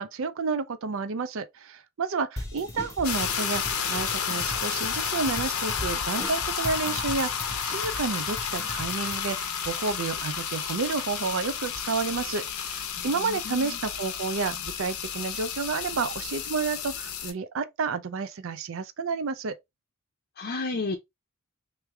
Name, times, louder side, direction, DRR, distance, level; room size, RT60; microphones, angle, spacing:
voice 1, 0.0-19.6, right 4 dB, 65° right, 0.5 m, -30 dB
sound 1, 2.4-9.2, left 1 dB, 15° left, 0.8 m, -39 dB
sound 2, 3.0-17.3, left 7 dB, 80° left, 0.8 m, -31 dB
voice 2, 13.0-13.8 20.4-21.0, left 3 dB, 50° left, 0.6 m, -33 dB
3.3 x 3.2 x 3.4 m
head